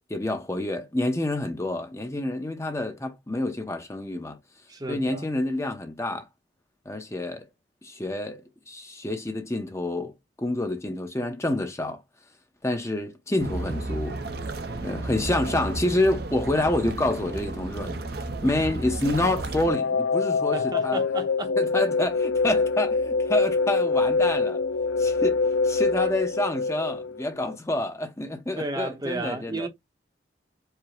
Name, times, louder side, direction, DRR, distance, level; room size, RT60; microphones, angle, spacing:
voice 1, 0.1-4.4 4.9-6.3 6.9-7.4 7.8-8.4 8.7-10.1 10.4-12.0 12.6-14.2 14.8-18.0 18.4-21.0 21.6-24.6 25.0-29.7, left 1 dB, 15° left, 0.7 m, -28 dB
voice 2, 4.7-5.3 14.6-15.0 20.5-21.5 28.6-29.7, right 2 dB, 20° right, 0.8 m, -33 dB
sound 1, 13.4-19.7, right 2 dB, 55° right, 0.7 m, -33 dB
sound 2, 19.6-27.5, left 4 dB, 80° left, 0.4 m, -25 dB
4.9 x 2.1 x 4.4 m
head